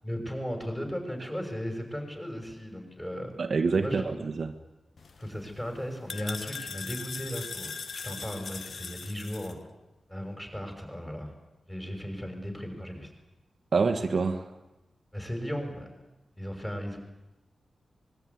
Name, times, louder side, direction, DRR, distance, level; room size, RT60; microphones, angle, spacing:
voice 1, 0.0-3.3 3.8-4.1 5.2-7.7 8.0-9.6 10.1-11.3 11.7-13.1 15.1-15.9 16.4-17.0, equal, 10° left, 4 dB, 6.0 m, -36 dB
voice 2, 3.4-4.5 13.7-14.5, right 4 dB, 45° right, 5 dB, 1.4 m, -26 dB
sound 1, 5.0-9.5, left 5 dB, 50° left, 1.3 m, -40 dB
24.5 x 21.5 x 9.6 m, 1.0 s
wide cardioid pair, 155°, 0 cm